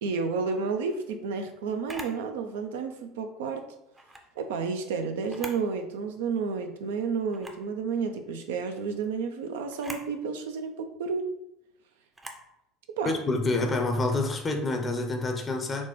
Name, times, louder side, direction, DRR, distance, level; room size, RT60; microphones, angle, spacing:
voice 1, 0.0-3.6 4.4-11.3 13.0-13.1, right 5 dB, 70° right, 6 dB, 0.4 m, -31 dB
Camera, 1.9-2.2 3.9-4.3 5.2-5.7 6.1-6.2 7.3-7.7 9.7-10.1 12.1-12.5, right 1 dB, 15° right, 0.5 m, -42 dB
voice 2, 13.0-15.9, left 2 dB, 30° left, 4 dB, 0.6 m, -27 dB
4.2 x 2.1 x 3.0 m, 0.81 s
hypercardioid pair, 70°, 0 cm